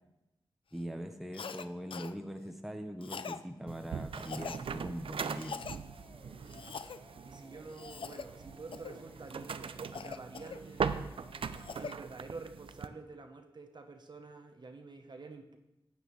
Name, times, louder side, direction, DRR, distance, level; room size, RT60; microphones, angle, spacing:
voice 1, 0.7-5.6, equal, 5° right, 5 dB, 0.8 m, -41 dB
Cough, 1.3-1.7 1.9-2.1 3.0-3.4 4.1-4.6 5.4-5.8 6.5-7.0 7.7-8.3 8.7-9.0 9.9-10.9 11.4-12.0, left 6 dB, 70° left, 0.4 m, -43 dB
sound 1, 3.7-12.9, right 6 dB, 75° right, 0.4 m, -40 dB
sound 2, 5.5-11.8, left 2 dB, 25° left, 0.6 m, -60 dB
voice 2, 7.3-11.3 11.8-15.6, right 3 dB, 55° right, 5 dB, 0.8 m, -48 dB
12.5 x 8.4 x 3.1 m, 0.93 s
wide cardioid pair, 75°, 9 cm